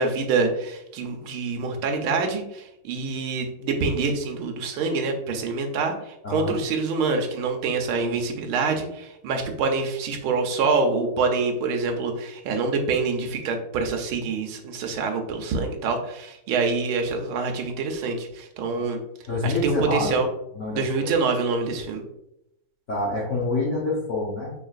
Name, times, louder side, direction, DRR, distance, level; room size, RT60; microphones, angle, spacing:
voice 1, 0.0-19.0 19.4-20.3 20.7-22.0, right 4 dB, 85° right, 3 dB, 1.6 m, -26 dB
voice 2, 6.2-6.6 19.3-20.1 20.5-21.1 22.9-24.5, left 2 dB, 50° left, -4 dB, 0.9 m, -26 dB
5.4 x 3.8 x 2.4 m, 0.82 s
omnidirectional pair, 2.3 m